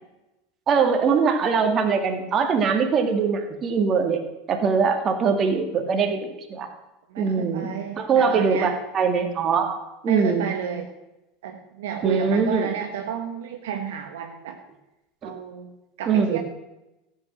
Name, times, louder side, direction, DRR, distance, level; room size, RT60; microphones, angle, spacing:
voice 1, 0.7-4.2 4.5-6.7 7.2-9.8 10.0-10.5 12.0-12.7 15.2-15.3 16.1-16.4, right 5 dB, 35° right, 5 dB, 2.2 m, -22 dB
voice 2, 7.1-8.8 10.1-10.9 11.4-14.6 15.2-16.4, right 8 dB, 70° right, 4 dB, 1.2 m, -31 dB
14.5 x 8.6 x 6.3 m, 0.96 s
figure-of-eight pair, 80°, 0 cm